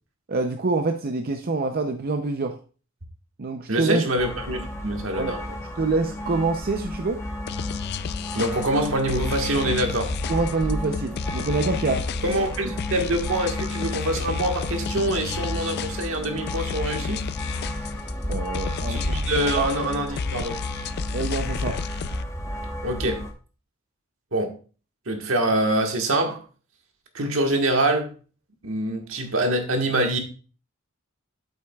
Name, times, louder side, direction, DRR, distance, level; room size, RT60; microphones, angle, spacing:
voice 1, 0.3-2.6 3.4-4.0 5.2-5.4 5.8-7.2 10.3-12.0 18.3-19.2 19.5-19.7 21.1-21.8, right 3 dB, 45° right, 5 dB, 0.6 m, -26 dB
voice 2, 3.7-5.4 8.3-10.1 12.2-17.2 18.9-20.6 22.8-23.2 24.3-24.5 25.1-26.4 27.1-28.1 28.6-30.2, right 1 dB, 70° right, 4 dB, 1.5 m, -25 dB
sound 1, 4.2-23.3, left 1 dB, 15° left, 1.0 m, -33 dB
sound 2, 7.5-22.2, left 6 dB, 50° left, 0.3 m, -32 dB
8.5 x 8.0 x 2.3 m, 0.37 s
head